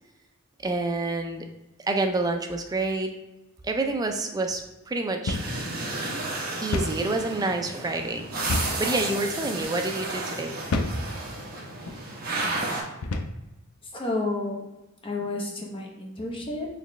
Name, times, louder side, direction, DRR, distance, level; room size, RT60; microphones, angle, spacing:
voice 1, 0.6-1.5 1.9-3.1 3.6-4.6 4.9-5.4 6.6-8.3 8.8-10.5, right 2 dB, 20° right, 4 dB, 0.4 m, -27 dB
sound 1, 5.3-5.6 5.9-6.0 6.7-7.0 8.5-8.8 9.5-9.7 10.7-11.0 11.8-12.0 13.0-13.4, left 2 dB, 85° left, 0.4 m, -28 dB
sound 2, 5.3-12.8, right 2 dB, 45° right, 0.9 m, -32 dB
voice 2, 13.9-14.6 15.0-16.7, left 2 dB, 25° left, -1 dB, 0.8 m, -30 dB
4.1 x 3.0 x 3.1 m, 0.99 s
head